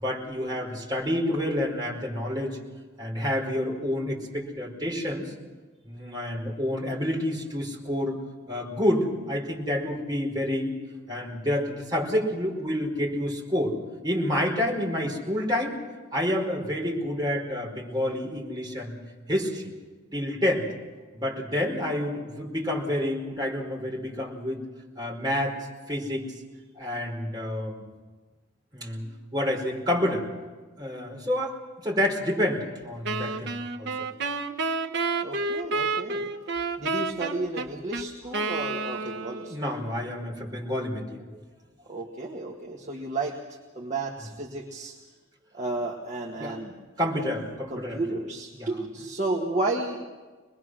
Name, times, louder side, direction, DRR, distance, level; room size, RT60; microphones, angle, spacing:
voice 1, 0.0-2.6 3.0-5.3 5.8-8.2 8.5-10.7 11.1-13.8 14.0-15.8 16.1-18.9 19.3-19.7 20.1-20.7 21.1-24.6 25.0-25.6 25.9-26.2 26.7-27.8 28.7-30.3 30.8-33.9 39.5-41.4 46.4-46.6 47.0-48.0 48.5-48.7, left 1 dB, 20° right, -2 dB, 4.7 m, -28 dB
Wind instrument woodwind instrument, 33.1-39.6, right 3 dB, 55° right, 1.2 m, -30 dB
voice 2, 35.2-36.3 36.8-39.6 41.9-45.0 45.5-46.8 47.2-47.3 47.7-50.1, right 2 dB, 35° right, -1 dB, 1.7 m, -32 dB
25.0 x 21.0 x 6.3 m, 1.3 s
head